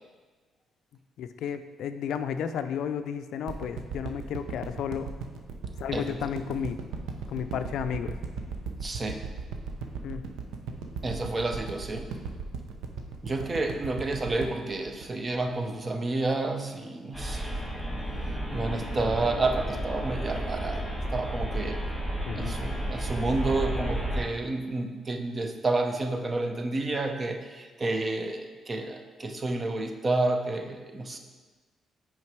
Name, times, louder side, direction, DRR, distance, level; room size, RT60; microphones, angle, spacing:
voice 1, 1.2-5.1 5.8-6.8 7.3-8.2 10.0-10.2 22.3-22.6, left 8 dB, 80° left, 9 dB, 0.4 m, -32 dB
sound 1, 3.5-15.8 16.2-16.3, right 5 dB, 85° right, 0.6 m, -37 dB
voice 2, 5.9-6.3 8.8-9.2 11.0-12.2 13.2-17.6 18.5-21.9 22.3-31.2, right 2 dB, 30° right, 5 dB, 0.7 m, -30 dB
sound 2, 17.1-24.2, right 1 dB, ahead, 2.2 m, -32 dB
6.0 x 5.0 x 4.6 m, 1.4 s
cardioid pair, 90°, 0 cm